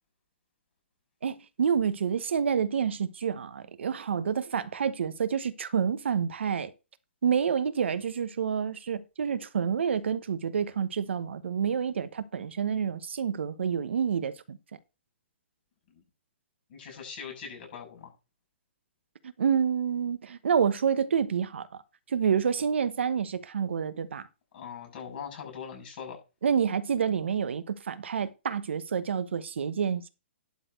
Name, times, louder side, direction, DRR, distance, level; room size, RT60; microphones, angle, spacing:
voice 1, 1.2-6.7 7.2-14.6 19.4-21.7 22.1-24.3 26.4-30.1, right 7 dB, 75° right, 1.1 m, -28 dB
voice 2, 16.7-18.1 24.5-26.2, left 7 dB, 50° left, 7.1 m, -41 dB
11.5 x 4.1 x 6.5 m
hypercardioid pair, 145°, 6 cm